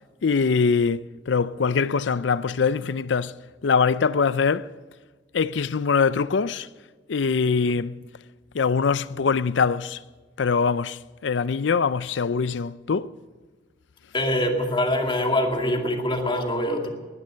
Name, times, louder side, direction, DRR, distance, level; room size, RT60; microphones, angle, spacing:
voice 1, 0.2-4.7 5.3-6.7 7.1-8.0 8.5-10.0 10.4-13.2, left 5 dB, 70° left, 0.5 m, -23 dB
voice 2, 14.1-16.9, left 1 dB, 25° left, 2.3 m, -24 dB
20.0 x 11.5 x 6.4 m
head